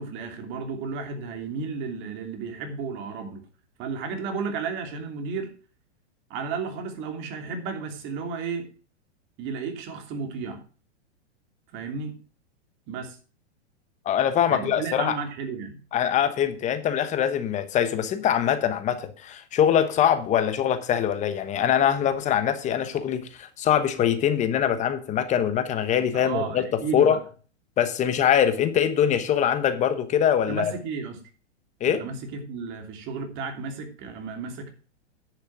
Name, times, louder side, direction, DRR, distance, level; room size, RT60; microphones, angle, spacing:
voice 1, 0.0-3.4 3.8-5.5 6.3-8.7 9.4-10.6 11.7-12.1 12.9-13.2 14.5-15.8 26.1-27.2 30.5-31.2 31.8-34.7, right 5 dB, 35° right, 4 dB, 2.9 m, -33 dB
voice 2, 14.0-15.2 15.9-26.6 26.9-27.2 27.8-30.7 31.8-32.0, left 9 dB, 20° left, 10 dB, 1.2 m, -23 dB
10.5 x 6.6 x 6.1 m, 0.39 s
hypercardioid pair, 150°, 34 cm